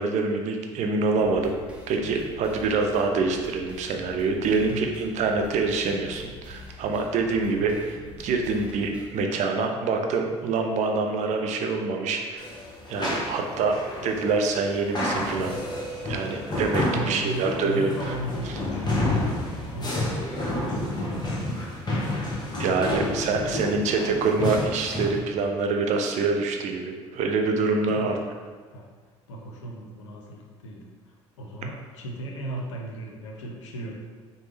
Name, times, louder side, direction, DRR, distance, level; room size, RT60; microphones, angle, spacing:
voice 1, 0.0-1.5 1.9-12.5 12.9-15.6 16.0-17.9 22.6-28.1, right 4 dB, 50° right, 3 dB, 0.5 m, -25 dB
sound 1, 1.2-9.2, left 1 dB, 5° right, 0.6 m, -45 dB
sound 2, 12.4-25.2, left 1 dB, 25° left, 0.9 m, -30 dB
voice 2, 16.9-21.3 28.0-28.1 28.7-28.9 29.3-30.9 31.4-34.0, right 1 dB, 80° left, 0 dB, 0.5 m, -37 dB
3.3 x 2.0 x 3.2 m, 1.5 s
hypercardioid pair, 60°, 15 cm